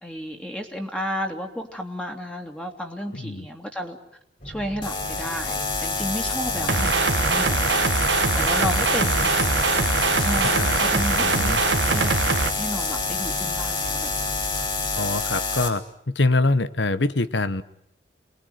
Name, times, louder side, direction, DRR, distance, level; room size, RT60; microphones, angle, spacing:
voice 1, 0.0-4.0 4.4-7.8 8.3-9.6 10.2-12.1 12.5-14.3, equal, 5° left, 2 dB, 2.6 m, -32 dB
voice 2, 3.1-3.5 6.5-6.8 8.5-8.7 10.4-10.8 11.2-11.6 15.0-17.6, left 2 dB, 85° left, 14 dB, 1.2 m, -25 dB
sound 1, 4.4-15.0, equal, 50° left, 7.8 m, -40 dB
sound 2, 4.8-15.7, left 3 dB, 30° left, 5.0 m, -27 dB
sound 3, 6.7-12.5, right 4 dB, 80° right, 1.4 m, -22 dB
28.0 x 20.5 x 9.3 m, 0.71 s
head